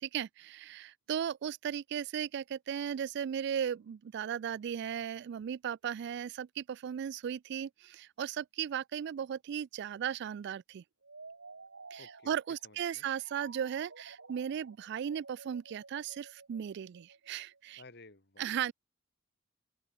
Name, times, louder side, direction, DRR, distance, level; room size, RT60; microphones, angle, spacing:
voice 1, 0.0-10.8 11.9-17.8 18.4-18.7, right 8 dB, 60° right, 0.3 m, -36 dB
sound 1, 11.0-17.7, right 4 dB, 75° right, 2.8 m, -53 dB
voice 2, 12.0-12.4 12.6-13.1 17.8-18.5, left 2 dB, 55° left, 4.2 m, -55 dB
open air
head